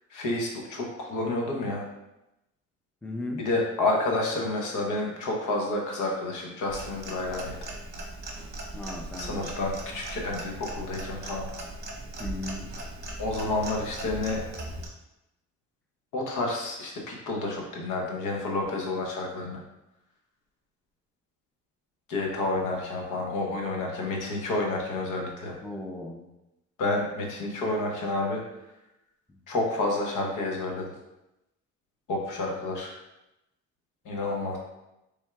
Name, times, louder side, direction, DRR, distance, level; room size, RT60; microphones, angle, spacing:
voice 1, 0.1-1.8 3.4-7.7 9.2-11.5 13.2-14.4 16.1-19.6 22.1-25.6 26.8-28.4 29.5-30.9 32.1-32.9 34.0-34.6, left 2 dB, 85° left, 0 dB, 0.9 m, -29 dB
voice 2, 3.0-3.5 8.7-9.5 12.2-12.7 25.6-26.2, left 1 dB, 5° left, 1 dB, 0.5 m, -36 dB
Clock, 6.7-14.9, right 1 dB, 35° right, 0.9 m, -39 dB
4.3 x 3.5 x 2.2 m, 0.92 s
cardioid pair, 90°, 30 cm